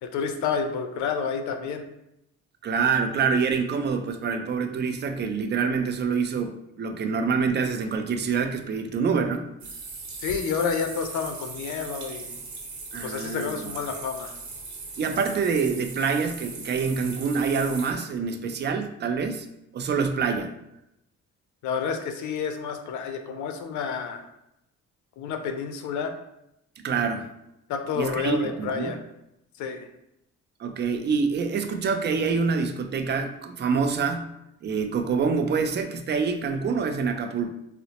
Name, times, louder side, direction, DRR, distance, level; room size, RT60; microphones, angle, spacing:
voice 1, 0.0-1.8 10.2-12.3 13.0-14.4 21.6-24.3 25.2-26.1 27.7-29.0 29.6-29.9, left 6 dB, 75° left, 6 dB, 0.5 m, -29 dB
voice 2, 2.6-9.5 12.9-13.6 15.0-19.5 19.7-20.5 26.8-27.3 28.0-28.9 30.6-34.3 34.6-37.5, right 5 dB, 35° right, 6 dB, 0.4 m, -26 dB
sound 1, 9.6-17.9, right 3 dB, 70° right, 1.0 m, -39 dB
3.9 x 2.0 x 2.8 m, 0.84 s
cardioid pair, 90°, 30 cm